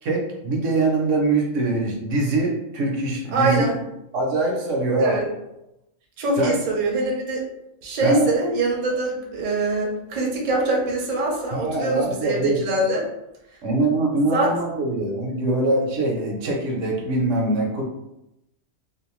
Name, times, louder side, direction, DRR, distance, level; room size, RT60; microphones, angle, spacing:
voice 1, 0.0-3.7 4.1-5.2 6.4-6.5 8.0-8.3 11.5-12.6 13.6-17.8, right 2 dB, 75° right, 0 dB, 1.0 m, -23 dB
voice 2, 3.3-3.8 5.0-5.2 6.2-7.4 7.8-13.0 14.2-14.5, right 2 dB, 50° right, -2 dB, 0.6 m, -23 dB
2.6 x 2.2 x 2.9 m, 0.89 s
omnidirectional pair, 1.3 m